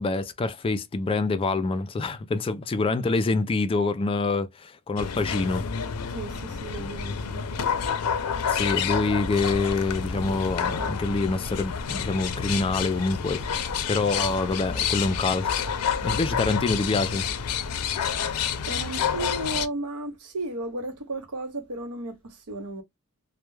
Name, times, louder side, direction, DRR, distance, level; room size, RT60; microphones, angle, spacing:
voice 1, 0.0-5.7 8.5-15.7 16.0-17.3, left 3 dB, 25° left, 0.3 m, -26 dB
sound 1, 5.0-19.7, left 7 dB, 90° left, 0.5 m, -29 dB
voice 2, 6.1-7.4 18.7-22.8, right 2 dB, 85° right, 0.7 m, -34 dB
2.2 x 2.1 x 3.0 m
head